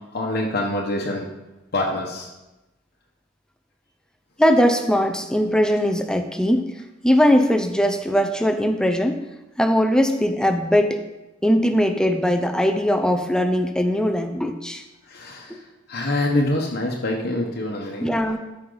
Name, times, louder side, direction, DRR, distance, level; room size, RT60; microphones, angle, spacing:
voice 1, 0.1-1.3 1.7-2.3 15.1-15.5 15.9-18.1, left 1 dB, 55° left, -2 dB, 1.1 m, -25 dB
voice 2, 4.4-6.7 7.0-9.2 9.6-11.0 11.4-14.8 15.5-15.6 18.0-18.4, equal, 5° left, 6 dB, 0.6 m, -20 dB
13.5 x 5.7 x 3.9 m, 1.0 s
head